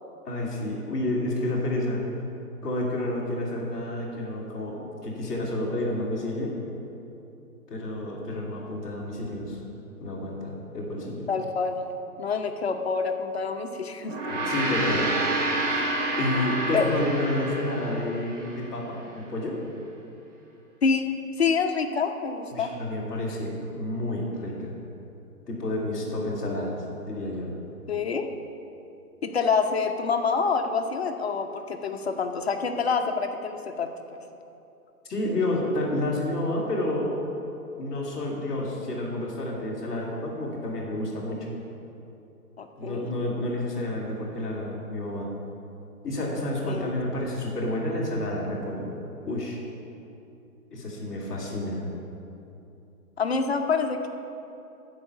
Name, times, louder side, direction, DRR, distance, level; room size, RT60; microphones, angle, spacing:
voice 1, 0.2-2.0 2.6-6.5 7.7-9.6 10.0-11.3 14.3-15.8 16.2-19.6 22.5-24.7 25.5-27.5 35.1-37.1 37.8-41.5 42.8-45.3 46.0-48.9 49.2-49.6 50.7-51.8, left 1 dB, ahead, -15 dB, 1.5 m, -30 dB
voice 2, 11.3-11.8 12.2-14.2 16.7-16.9 20.8-22.7 27.9-28.3 29.2-34.2 42.6-43.1 46.7-47.0 53.2-54.1, left 5 dB, 45° left, 5 dB, 0.7 m, -27 dB
Gong, 14.0-18.6, right 2 dB, 50° right, 1.7 m, -28 dB
12.5 x 4.8 x 8.0 m, 2.8 s
hypercardioid pair, 175°, 46 cm